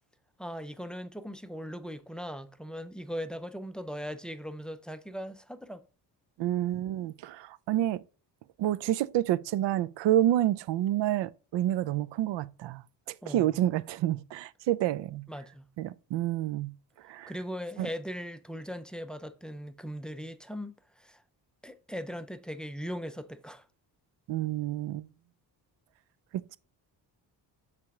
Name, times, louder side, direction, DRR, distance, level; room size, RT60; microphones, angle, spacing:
voice 1, 0.4-5.8 13.2-13.6 15.3-15.7 17.3-21.2 21.6-23.7, equal, ahead, 0.4 m, -39 dB
voice 2, 6.4-8.0 8.6-15.3 15.8-16.7 17.0-17.3 17.8-17.9 24.3-25.1 26.3-26.6, right 13 dB, 80° right, 0.5 m, -29 dB
6.9 x 3.4 x 4.8 m
cardioid pair, 105°, 43 cm